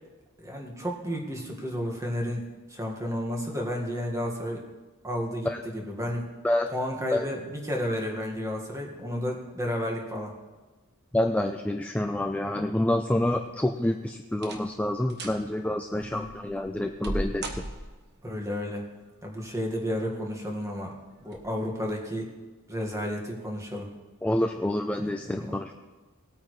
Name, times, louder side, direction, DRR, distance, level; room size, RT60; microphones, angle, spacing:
voice 1, 0.4-4.6 5.0-5.5 5.7-6.3 6.7-10.3 16.1-16.2 18.2-18.8 19.2-20.9 21.2-22.3 22.7-23.9 25.0-25.6, equal, 15° right, 0 dB, 1.7 m, -32 dB
voice 2, 11.1-17.6 24.2-25.7, left 1 dB, 5° left, 4 dB, 0.4 m, -27 dB
sound 1, 13.4-13.8 14.3-14.8 15.1-15.4 16.0-18.2 19.4-20.0 20.4-20.5 21.3-21.5 21.8-21.9, right 1 dB, 50° right, 1.2 m, -37 dB
19.0 x 8.9 x 3.2 m, 1.2 s
head